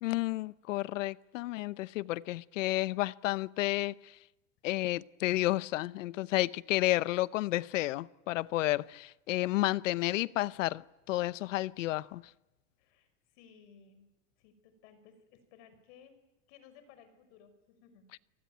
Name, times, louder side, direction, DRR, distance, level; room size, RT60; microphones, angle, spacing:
voice 1, 0.0-4.1 4.6-12.2, left 17 dB, 80° left, 0.9 m, -31 dB
voice 2, 12.8-14.1 14.4-16.2 16.5-18.1, left 7 dB, 60° left, 5.9 m, -59 dB
28.0 x 19.0 x 9.3 m
supercardioid pair, 135°, 37 cm